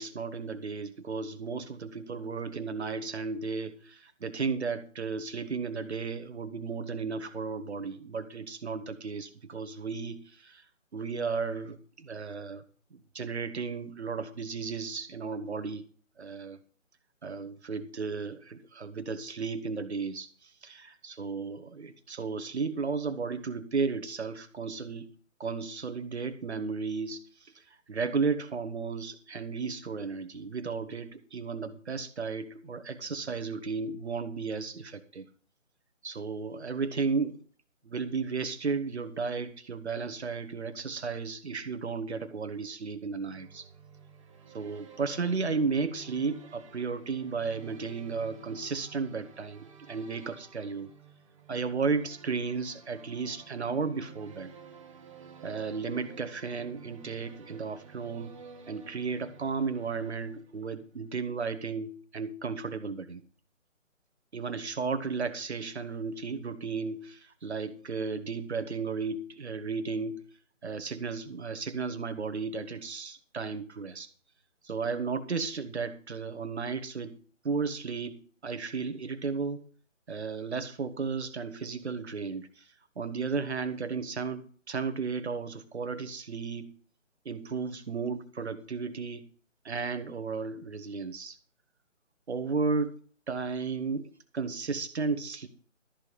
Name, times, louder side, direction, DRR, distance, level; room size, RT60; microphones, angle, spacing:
voice 1, 0.0-10.6 10.9-12.6 12.9-15.8 16.2-16.6 17.2-25.1 25.4-27.6 27.9-35.3 36.0-37.4 37.8-43.6 44.5-50.9 51.5-54.5 55.4-58.3 58.7-63.2 64.3-70.2 70.6-74.1 74.6-77.2 77.4-79.6 80.1-82.6 83.0-86.7 87.2-89.2 89.6-91.4 92.3-92.9 93.3-95.5, right 4 dB, 55° right, 11 dB, 1.5 m, -34 dB
sound 1, 43.1-60.8, right 6 dB, 25° right, 1.4 m, -52 dB
13.5 x 5.1 x 7.8 m, 0.43 s
figure-of-eight pair, 150°, 38 cm